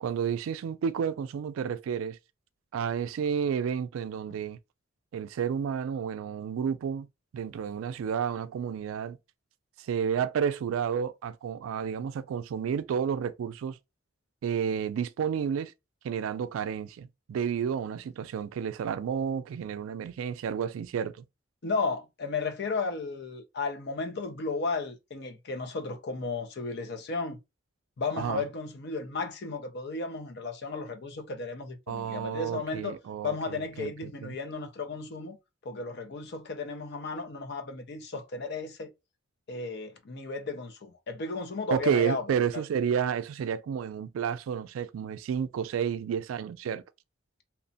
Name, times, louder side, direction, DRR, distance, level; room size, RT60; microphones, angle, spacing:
voice 1, 0.0-2.2 2.7-4.6 5.1-7.1 7.3-9.2 9.8-13.8 14.4-15.7 16.0-21.2 28.2-28.4 31.9-34.4 41.7-46.8, right 7 dB, 90° right, 0.3 m, -31 dB
voice 2, 21.6-27.4 28.0-33.0 33.2-35.4 35.6-38.9 39.5-42.2 42.5-42.6, left 4 dB, 55° left, 0.5 m, -34 dB
2.9 x 2.1 x 2.6 m
head